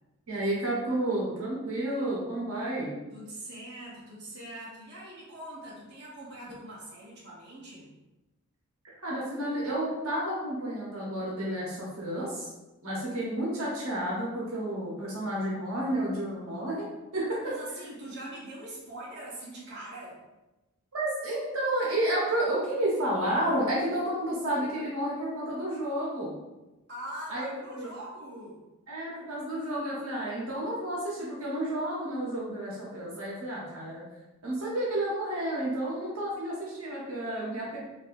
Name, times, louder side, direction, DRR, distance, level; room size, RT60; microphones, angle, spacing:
voice 1, 0.3-3.0 9.0-12.5 12.8-16.9 17.1-17.5 20.9-26.4 27.3-27.9 28.9-34.0 34.4-37.8, right 1 dB, 90° right, -5 dB, 1.1 m, -31 dB
voice 2, 3.1-7.9 17.4-20.2 26.9-28.6, right 1 dB, 55° right, -7 dB, 1.1 m, -42 dB
4.2 x 2.7 x 2.6 m, 1.0 s
head